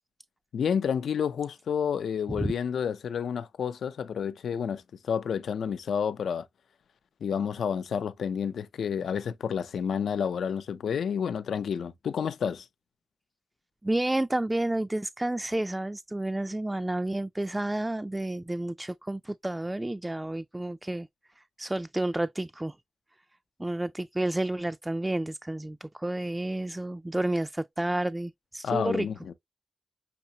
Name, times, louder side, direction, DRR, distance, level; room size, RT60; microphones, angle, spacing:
voice 1, 0.5-6.5 7.2-12.7 28.6-29.3, left 7 dB, 85° left, 0.5 m, -30 dB
voice 2, 13.8-21.1 21.4-22.8 23.6-29.1, right 1 dB, 15° right, 0.3 m, -30 dB
6.7 x 2.6 x 2.8 m
cardioid pair, 65°, 0 cm